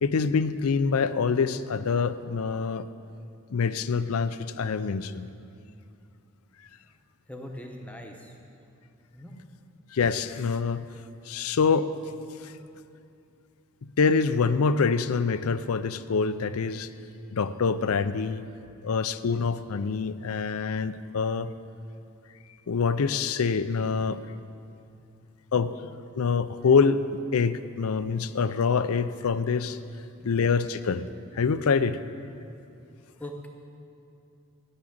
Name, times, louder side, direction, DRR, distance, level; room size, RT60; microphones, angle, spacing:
voice 1, 0.0-2.9 3.5-5.3 9.9-10.9 11.3-11.9 12.4-12.5 13.8-16.9 17.3-18.4 18.8-21.5 22.7-24.2 25.5-25.7 26.1-27.0 27.3-29.8 30.2-31.1 31.3-32.0, left 5 dB, 80° left, 13 dB, 0.5 m, -25 dB
voice 2, 7.3-8.3 9.1-9.3 30.1-30.3 33.1-33.5, left 1 dB, 5° left, 2 dB, 1.0 m, -41 dB
14.0 x 6.3 x 8.6 m, 2.6 s
head